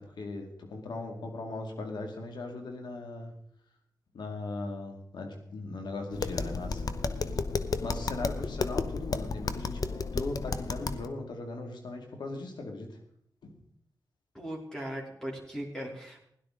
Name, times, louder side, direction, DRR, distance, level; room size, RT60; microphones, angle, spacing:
voice 1, 0.0-3.3 4.1-6.8 7.8-9.8 10.1-12.9 13.4-13.5, left 2 dB, 85° left, 4 dB, 2.2 m, -38 dB
Tap, 6.1-11.1, left 4 dB, 55° left, 0.8 m, -32 dB
voice 2, 14.3-16.2, equal, 10° left, -2 dB, 3.2 m, -38 dB
16.5 x 11.5 x 3.8 m, 0.71 s
cardioid pair, 55°, 7 cm